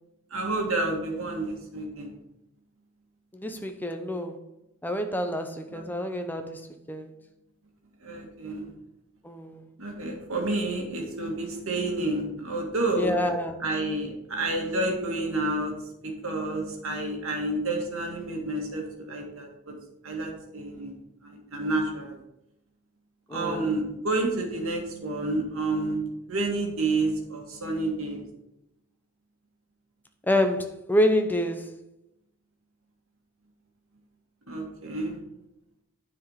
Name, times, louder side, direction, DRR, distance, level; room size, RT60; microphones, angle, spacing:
voice 1, 0.3-2.1 5.7-5.8 8.0-8.7 9.8-13.1 13.6-15.7 16.0-19.7 20.0-22.2 23.3-26.0 26.3-28.2 34.5-35.2, right 2 dB, 65° right, 2.0 m, -29 dB
voice 2, 3.3-4.4 4.8-7.2 9.2-9.7 13.0-13.6 23.3-23.7 30.2-31.7, left 1 dB, 10° left, 0.7 m, -27 dB
9.4 x 4.9 x 5.7 m
head